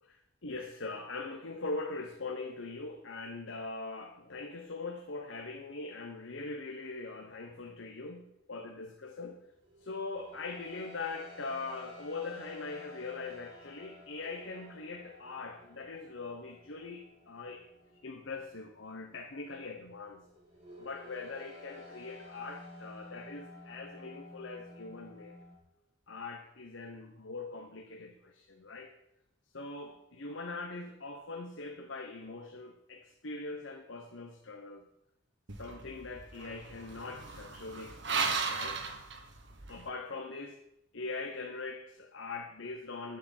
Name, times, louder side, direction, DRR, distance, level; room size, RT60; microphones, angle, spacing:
voice 1, 0.0-9.4 9.8-17.6 18.0-20.3 20.8-25.4 26.1-28.9 29.5-34.8 35.6-38.8 39.7-40.6 40.9-43.2, left 3 dB, 65° left, 3 dB, 1.1 m, -42 dB
sound 1, 9.2-25.6, left 1 dB, 35° right, 3.6 m, -53 dB
sound 2, 35.5-39.8, right 5 dB, 60° right, 1.5 m, -36 dB
11.0 x 7.7 x 7.4 m, 0.84 s
head